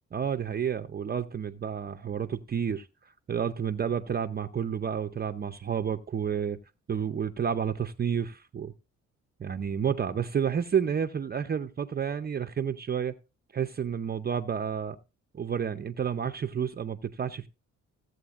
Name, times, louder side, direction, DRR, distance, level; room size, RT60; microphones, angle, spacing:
voice 1, 0.1-6.6 6.9-8.7 9.4-13.1 13.5-15.0 15.3-17.5, right 7 dB, 30° right, 0.6 m, -30 dB
16.0 x 7.8 x 2.5 m
cardioid pair, 90°, 30 cm